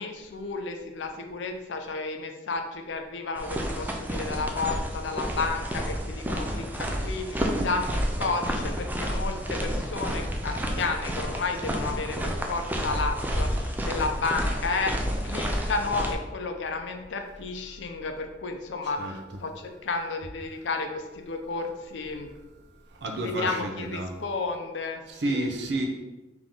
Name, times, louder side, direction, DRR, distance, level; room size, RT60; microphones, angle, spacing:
voice 1, 0.0-22.3 23.1-25.5, left 3 dB, 70° left, 5 dB, 0.5 m, -32 dB
sound 1, 3.4-16.1, equal, 10° right, 0.4 m, -30 dB
voice 2, 23.0-24.1 25.2-25.9, right 1 dB, 65° right, 3 dB, 0.6 m, -30 dB
3.6 x 2.9 x 3.8 m, 1.1 s
head